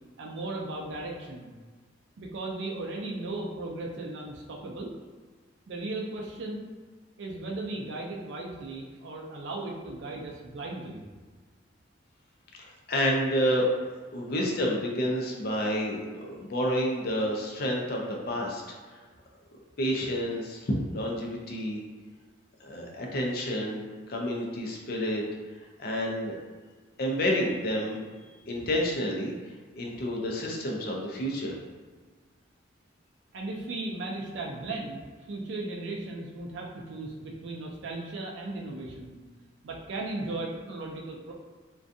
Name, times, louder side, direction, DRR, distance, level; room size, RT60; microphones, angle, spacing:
voice 1, 0.2-1.5 2.2-4.9 5.7-6.6 7.2-11.0 28.6-28.7 33.3-39.1 39.6-41.3, right 2 dB, 70° right, -1 dB, 0.4 m, -36 dB
voice 2, 12.6-13.7 14.1-18.6 19.8-21.8 22.6-25.2 25.8-26.4 27.0-28.0 28.5-29.3 29.7-31.5, equal, 50° left, -1 dB, 0.4 m, -29 dB
2.5 x 2.2 x 2.5 m, 1.4 s
head